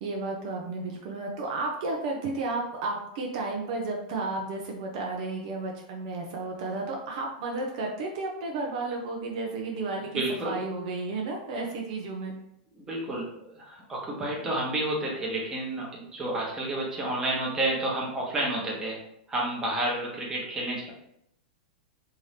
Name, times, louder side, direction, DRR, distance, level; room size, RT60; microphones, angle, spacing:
voice 1, 0.0-12.3, right 3 dB, 55° right, 0 dB, 0.7 m, -32 dB
voice 2, 10.1-10.5 12.8-13.3 13.5-19.0 19.3-20.9, right 1 dB, 15° right, -3 dB, 1.1 m, -30 dB
3.5 x 2.8 x 3.3 m, 0.76 s
supercardioid pair, 140°, 4 cm